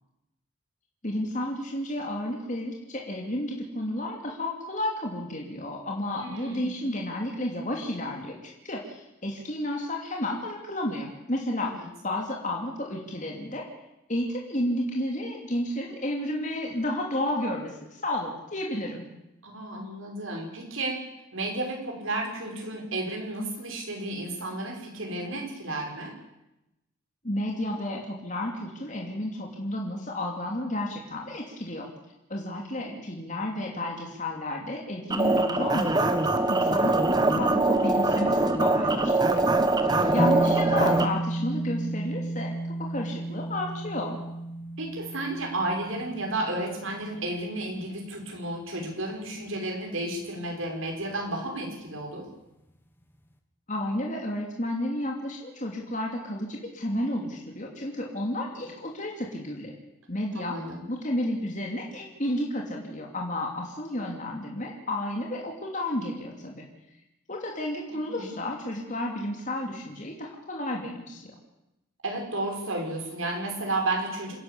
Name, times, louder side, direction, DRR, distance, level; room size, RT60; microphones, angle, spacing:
voice 1, 1.0-11.7 12.0-13.6 14.1-19.0 27.2-31.9 32.3-39.4 40.1-42.5 42.8-44.2 53.7-59.7 60.1-60.6 60.9-66.6 67.3-71.3, left 1 dB, 35° left, 0 dB, 2.9 m, -32 dB
voice 2, 6.2-6.8 11.6-11.7 19.4-21.0 21.3-26.1 32.8-32.9 39.9-40.3 44.8-52.3 60.3-60.8 67.9-68.3 72.0-74.4, right 2 dB, 80° right, 1 dB, 5.7 m, -32 dB
sound 1, 35.1-41.1, right 2 dB, 20° right, 1.3 m, -23 dB
sound 2, 40.2-48.6, right 1 dB, 10° left, 1.7 m, -33 dB
27.5 x 11.0 x 8.6 m, 0.91 s
head